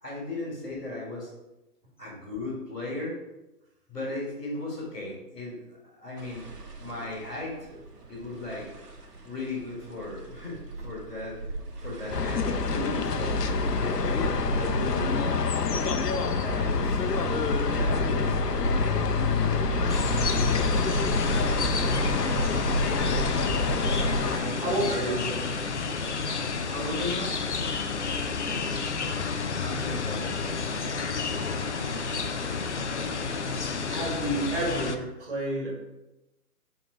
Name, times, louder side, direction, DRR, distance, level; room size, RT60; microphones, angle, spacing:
voice 1, 0.0-1.3 2.0-3.2 3.9-7.7 8.1-8.7 9.2-11.4 11.8-13.4 13.8-15.4 16.4-17.0 17.7-20.0 20.5-20.9 21.8-22.1 23.0-23.7 24.3-25.4 26.6-27.3 29.6-30.3, left 2 dB, ahead, -21 dB, 0.9 m, -37 dB
sound 1, 6.2-24.2, right 2 dB, 85° right, 1.7 m, -34 dB
sound 2, 12.1-24.4, left 5 dB, 85° left, 0.9 m, -27 dB
sound 3, 19.9-35.0, left 4 dB, 50° left, 0.5 m, -31 dB
voice 2, 24.6-25.2 28.5-28.9 33.9-35.7, right 1 dB, 35° right, -3 dB, 2.3 m, -30 dB
7.1 x 3.9 x 5.0 m, 0.98 s
hypercardioid pair, 165°, 47 cm